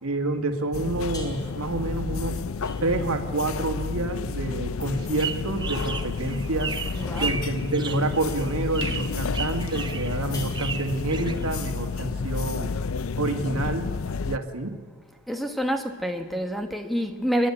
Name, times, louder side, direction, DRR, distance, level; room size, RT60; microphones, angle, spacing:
voice 1, 0.0-2.4 2.8-6.7 7.2-12.8 13.2-13.9 14.3-14.8, right 2 dB, 80° right, 2.1 m, -28 dB
sound 1, 0.7-14.4, left 4 dB, 70° left, 0.6 m, -31 dB
sound 2, 1.1-1.7 2.6-3.3 4.3-11.1, left 1 dB, 15° left, 3.7 m, -49 dB
sound 3, 4.9-12.0, right 5 dB, 20° right, 0.8 m, -35 dB
voice 2, 6.9-7.3 15.3-17.5, equal, ahead, 1.1 m, -27 dB
28.0 x 11.5 x 9.8 m
head